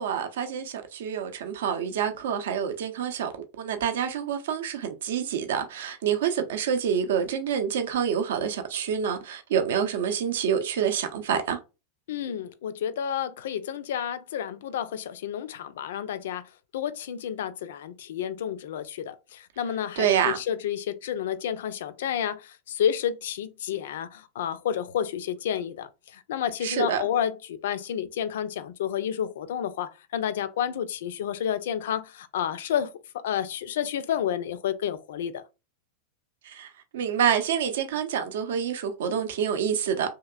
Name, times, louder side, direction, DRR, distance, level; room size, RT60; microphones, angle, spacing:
voice 1, 0.0-11.6 20.0-20.4 26.6-27.0 36.4-40.1, right 8 dB, 60° right, 0.5 m, -27 dB
voice 2, 12.1-16.4 16.7-32.9 33.2-35.4, left 9 dB, 55° left, 0.3 m, -30 dB
2.8 x 2.8 x 2.3 m
figure-of-eight pair, 90°, 0 cm